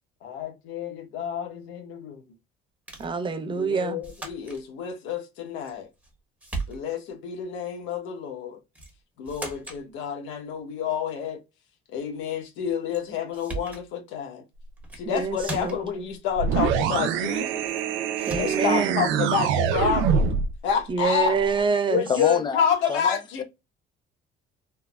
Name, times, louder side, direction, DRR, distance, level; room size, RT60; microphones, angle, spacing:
voice 1, 0.2-2.2 3.5-5.9 6.7-8.6 9.2-11.4 11.9-14.4 15.0-17.6 18.4-20.2 20.6-21.4 21.9-23.4, left 8 dB, 85° left, 1.1 m, -29 dB
sound 1, 2.9-3.2 4.0-4.6 5.7-6.1 6.4-7.1 8.7-9.0 9.3-9.8 12.9-13.0 13.3-13.9 14.8-15.1 15.4-16.0 17.7-17.8 18.2-18.7, right 3 dB, 10° right, 1.0 m, -37 dB
voice 2, 3.0-4.0 15.1-15.8 18.3-19.0 20.9-22.0, right 5 dB, 25° right, 0.6 m, -26 dB
sound 2, 16.4-20.5, right 7 dB, 85° right, 0.4 m, -24 dB
voice 3, 22.1-23.4, left 6 dB, 25° left, 0.5 m, -27 dB
3.4 x 2.0 x 2.3 m
cardioid pair, 115°, 20 cm